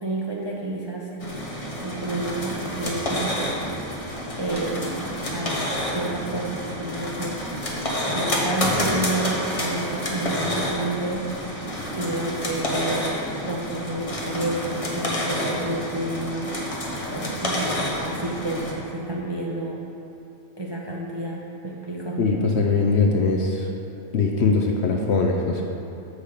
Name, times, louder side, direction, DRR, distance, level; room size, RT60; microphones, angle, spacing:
voice 1, 0.0-1.1 1.8-3.3 4.4-7.4 8.1-11.3 11.9-16.5 17.1-19.8 20.6-22.2, right 2 dB, 40° right, -3 dB, 0.4 m, -30 dB
voice 2, 1.1-1.4 22.2-23.7 24.1-25.6, left 4 dB, 60° left, 1 dB, 0.7 m, -22 dB
sound 1, 1.2-18.7, left 1 dB, 25° left, 0.9 m, -29 dB
7.0 x 6.3 x 5.0 m, 2.9 s
omnidirectional pair, 1.5 m